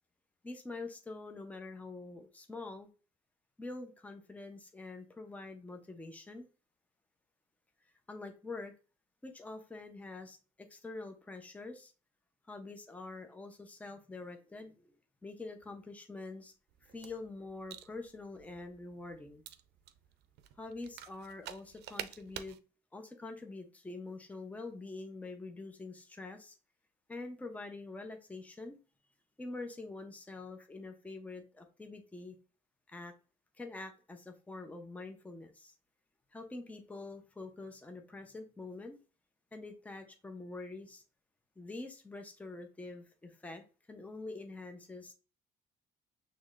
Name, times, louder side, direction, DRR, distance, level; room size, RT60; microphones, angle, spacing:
voice 1, 0.4-2.9 3.6-6.5 8.1-8.7 9.2-11.9 12.5-14.9 15.2-16.5 16.8-19.4 20.6-22.6 22.9-26.6 27.1-28.8 29.4-32.4 32.9-33.1 33.6-35.7 36.3-39.0 39.5-41.0 41.6-45.1, left 3 dB, 10° left, 5 dB, 0.7 m, -45 dB
sound 1, 16.7-22.6, right 11 dB, 80° right, 0.5 m, -49 dB
6.2 x 3.1 x 2.5 m, 0.35 s
cardioid pair, 110°, 17 cm